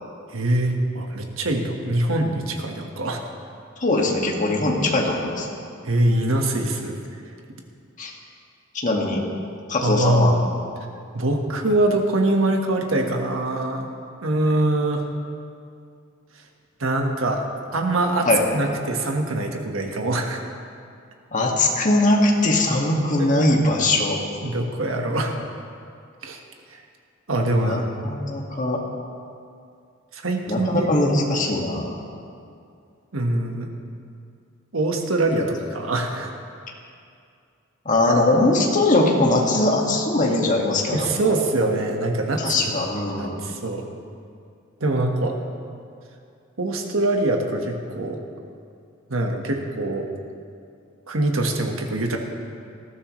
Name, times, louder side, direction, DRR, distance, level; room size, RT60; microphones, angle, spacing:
voice 1, 0.3-3.2 5.8-7.0 9.8-10.4 11.1-13.9 14.2-15.1 16.8-17.4 17.7-20.4 23.2-23.6 24.4-25.4 26.2-26.4 27.3-27.8 30.1-30.9 33.1-33.7 34.7-36.3 40.9-42.7 43.2-43.8 44.8-45.4 46.6-48.2 49.1-50.1 51.1-52.2, right 2 dB, 80° right, 2 dB, 1.5 m, -23 dB
voice 2, 3.8-5.5 8.0-8.1 8.8-9.2 9.7-10.3 18.2-18.4 21.3-24.2 27.6-28.8 30.5-32.0 37.9-41.1 42.4-43.4, left 2 dB, 40° left, -1 dB, 1.9 m, -21 dB
19.5 x 14.0 x 3.2 m, 2.4 s
head